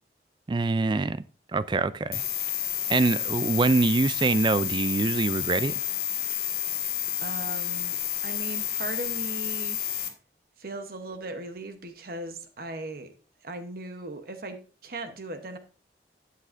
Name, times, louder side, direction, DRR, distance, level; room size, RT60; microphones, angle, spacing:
voice 1, 0.5-1.2 1.5-2.2 2.9-5.7, right 3 dB, 25° right, 0.3 m, -24 dB
sound 1, 2.1-10.1, left 10 dB, 55° left, 1.8 m, -30 dB
voice 2, 7.2-9.8 10.6-13.1 13.4-15.6, right 2 dB, 55° right, 0.9 m, -38 dB
12.5 x 8.3 x 2.5 m
head